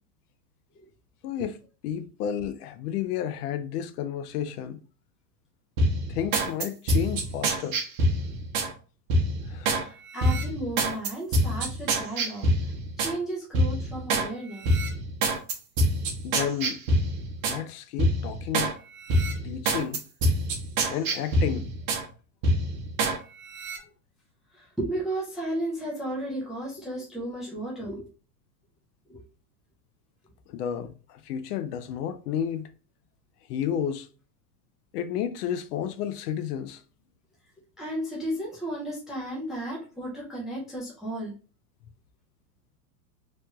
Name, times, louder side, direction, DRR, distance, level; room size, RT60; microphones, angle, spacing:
voice 1, 1.2-1.6 1.8-4.8 6.1-7.8 9.5-9.9 16.2-16.8 17.4-18.7 19.4-20.0 20.9-21.7 30.5-32.7 33.5-34.1 34.9-36.8, left 9 dB, 70° left, 0.6 m, -31 dB
sound 1, 5.8-8.7 9.1-9.8 10.2-13.2 13.5-14.3 14.6-17.6 18.0-18.7 19.1-22.1 22.4-23.2 23.5-23.8, right 1 dB, 50° right, 0.9 m, -26 dB
voice 2, 9.7-12.5 13.0-14.7 24.5-28.0 29.1-29.2 37.8-41.3, right 1 dB, ahead, 0.3 m, -34 dB
3.1 x 2.2 x 2.9 m
supercardioid pair, 130°, 49 cm